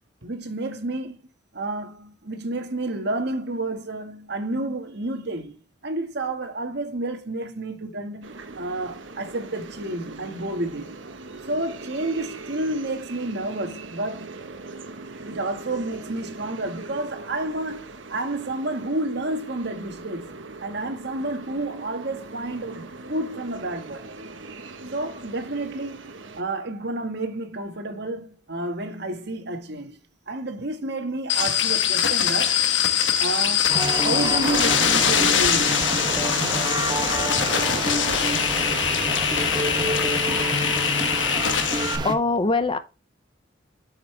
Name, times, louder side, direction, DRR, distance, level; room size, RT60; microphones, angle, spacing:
voice 1, 0.2-1.2 1.5-11.1 11.5-14.4 15.2-24.1 24.9-30.0 30.3-32.6 33.2-35.9, right 2 dB, 60° right, 1.6 m, -30 dB
sound 1, 8.2-26.4, right 3 dB, 80° right, 1.2 m, -41 dB
sound 2, 31.3-42.0, left 8 dB, 80° left, 1.2 m, -23 dB
sound 3, 33.7-42.1, right 2 dB, 25° right, 1.0 m, -28 dB
voice 2, 42.0-42.8, left 3 dB, 30° left, 0.7 m, -22 dB
8.3 x 6.6 x 3.3 m
head